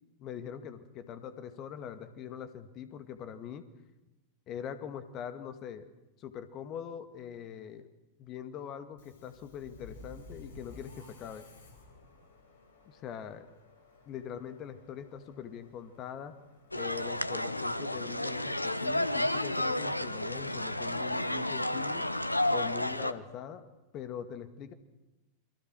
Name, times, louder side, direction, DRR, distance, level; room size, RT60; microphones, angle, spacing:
voice 1, 0.2-3.6 4.5-5.9 6.2-7.9 8.2-11.5 12.9-13.5 14.1-16.3 16.7-22.0 22.5-23.6 23.9-24.7, left 8 dB, 35° left, 10 dB, 2.1 m, -42 dB
Subway metro underground, 8.9-22.4, left 3 dB, 60° left, 4.6 m, -56 dB
sound 1, 16.7-23.1, left 1 dB, 85° left, 0.9 m, -31 dB
29.0 x 23.0 x 6.3 m, 1.0 s
figure-of-eight pair, 90°, 0 cm